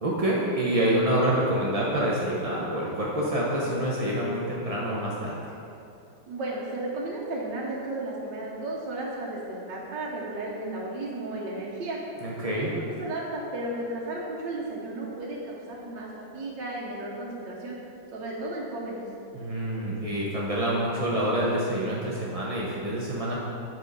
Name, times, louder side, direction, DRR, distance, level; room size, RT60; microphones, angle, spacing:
voice 1, 0.0-5.5 12.2-12.7 19.3-23.4, right 1 dB, 55° right, -5 dB, 0.4 m, -27 dB
voice 2, 6.3-12.0 12.6-17.8 18.1-19.0, right 2 dB, 75° right, -4 dB, 1.6 m, -34 dB
8.0 x 4.5 x 5.3 m, 2.7 s
omnidirectional pair, 1.9 m